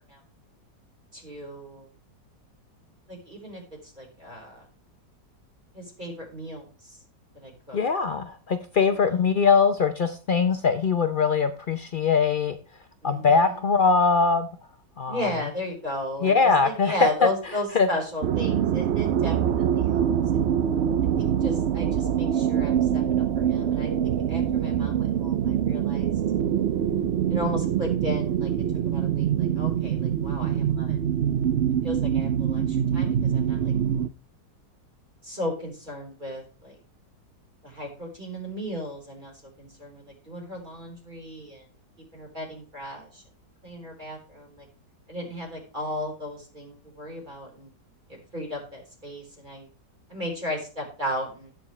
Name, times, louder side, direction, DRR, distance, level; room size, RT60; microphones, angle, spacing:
voice 1, 1.1-1.9 3.1-4.7 5.7-7.0 7.3-7.8 8.9-9.2 13.0-13.7 15.1-20.5 21.2-26.1 27.3-28.5 28.8-31.0 31.8-33.7 35.2-36.8 37.6-41.7 42.1-43.2 43.6-44.7 45.1-47.7 48.1-49.7 50.1-51.5, left 1 dB, 25° right, 0 dB, 4.4 m, -35 dB
voice 2, 7.7-12.6 13.0-14.5 15.0-15.2 16.2-16.9 17.7-17.9, left 5 dB, 85° left, 8 dB, 0.4 m, -22 dB
sound 1, 18.2-34.1, right 9 dB, 85° right, 0.5 m, -24 dB
17.0 x 6.3 x 3.2 m, 0.37 s
omnidirectional pair, 1.9 m